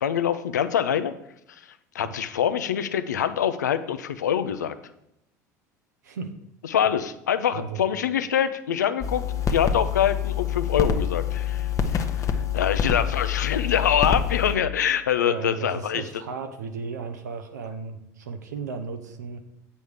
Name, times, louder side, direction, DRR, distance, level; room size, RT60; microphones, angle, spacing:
voice 1, 0.0-1.1 1.5-4.7 6.6-9.2 9.5-16.0, left 9 dB, 80° left, 11 dB, 0.5 m, -25 dB
voice 2, 6.0-6.4 7.5-7.8 15.2-19.4, right 5 dB, 80° right, 6 dB, 0.7 m, -35 dB
sound 1, 9.0-14.6, left 7 dB, 35° left, 0.9 m, -26 dB
8.0 x 5.3 x 4.9 m, 0.81 s
hypercardioid pair, 70°, 9 cm